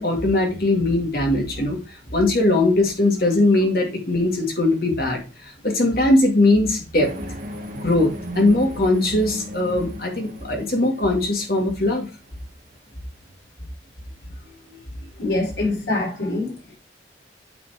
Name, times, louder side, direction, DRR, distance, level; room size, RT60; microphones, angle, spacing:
voice 1, 0.0-1.8 2.1-5.2 5.6-7.1 7.8-12.1 14.7-14.8, left 2 dB, 55° left, 2.2 m, -20 dB
sound 1, 7.0-12.1, equal, 45° right, 1.4 m, -36 dB
voice 2, 15.2-16.7, left 2 dB, 85° left, 4.2 m, -25 dB
8.6 x 4.2 x 4.3 m
head